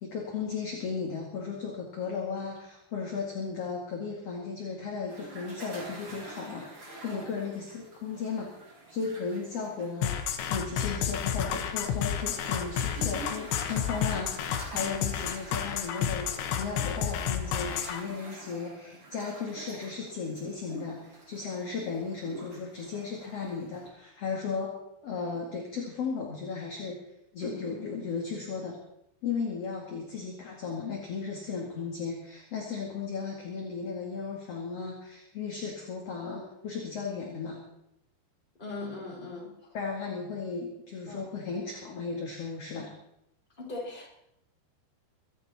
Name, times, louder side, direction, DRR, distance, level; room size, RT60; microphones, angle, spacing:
voice 1, 0.0-8.5 8.9-24.8 25.0-27.0 27.3-28.8 29.2-37.6 39.7-42.9, left 5 dB, 40° left, -1 dB, 2.7 m, -35 dB
sound 1, 5.1-23.9, right 2 dB, 30° right, 4.8 m, -47 dB
sound 2, 10.0-18.0, left 8 dB, 80° left, 3.5 m, -31 dB
voice 2, 38.6-39.5 41.1-41.2 43.6-44.1, left 3 dB, 10° left, -3 dB, 4.6 m, -39 dB
24.5 x 11.5 x 4.4 m, 0.79 s
omnidirectional pair, 5.2 m